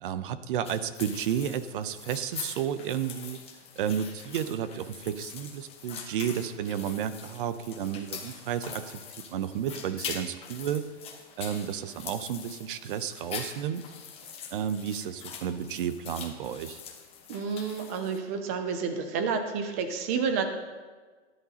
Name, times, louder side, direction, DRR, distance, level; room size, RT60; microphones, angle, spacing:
voice 1, 0.0-3.4 3.8-10.9 11.4-13.8 14.5-16.8, right 9 dB, 45° right, 13 dB, 0.7 m, -32 dB
sound 1, 0.6-18.2, left 7 dB, 15° left, 1.0 m, -43 dB
voice 2, 17.3-20.4, right 5 dB, 15° right, 7 dB, 0.3 m, -30 dB
14.0 x 11.0 x 2.9 m, 1.4 s
hypercardioid pair, 155°, 36 cm